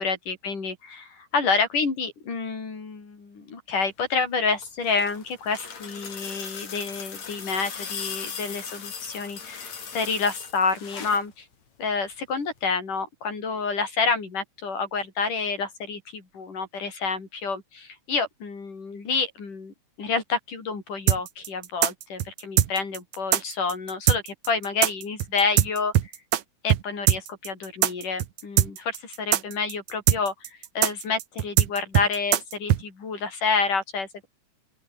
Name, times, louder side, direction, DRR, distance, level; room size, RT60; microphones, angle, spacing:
voice 1, 0.0-11.5 11.8-26.1 26.6-30.3 30.8-34.3, left 4 dB, 85° left, 7.4 m, -28 dB
sound 1, 4.5-11.3 12.6-12.7, left 6 dB, 60° left, 4.8 m, -38 dB
sound 2, 21.1-26.4 26.7-26.8 27.1-32.8, right 12 dB, 70° right, 2.6 m, -21 dB
open air
omnidirectional pair, 3.6 m